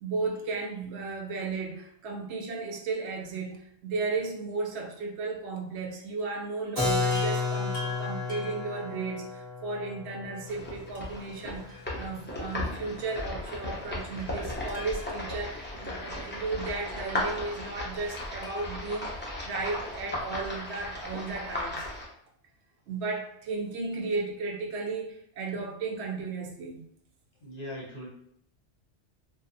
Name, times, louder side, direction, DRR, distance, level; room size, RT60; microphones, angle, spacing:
voice 1, 0.0-21.9 22.9-26.8, right 3 dB, 75° right, 0 dB, 0.9 m, -34 dB
Keyboard (musical), 6.8-12.4, left 3 dB, 30° right, 1.2 m, -32 dB
Chime, 7.1-9.5 10.9-12.5 12.7-12.8 14.0-16.7 18.4-20.0 21.6-21.7 21.9-22.0, left 2 dB, 70° left, 0.8 m, -47 dB
sound 1, 10.5-22.1, left 1 dB, 15° left, 0.4 m, -36 dB
voice 2, 27.4-28.1, left 1 dB, 40° left, -5 dB, 0.9 m, -39 dB
2.6 x 2.3 x 2.5 m, 0.70 s
omnidirectional pair, 1.2 m